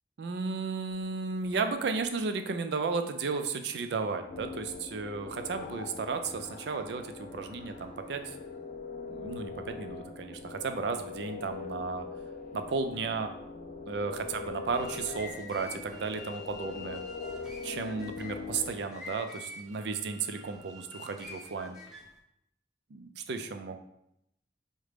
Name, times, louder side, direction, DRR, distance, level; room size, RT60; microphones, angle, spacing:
voice 1, 0.2-8.3 9.1-12.1 12.5-13.3 13.9-17.0 17.6-21.8 22.9-23.8, right 4 dB, 70° right, 7 dB, 0.4 m, -34 dB
sound 1, 4.3-18.7, left 4 dB, 45° left, 0.4 m, -42 dB
sound 2, 14.5-22.2, left 2 dB, 5° right, 0.6 m, -47 dB
4.8 x 2.1 x 3.2 m, 0.79 s
head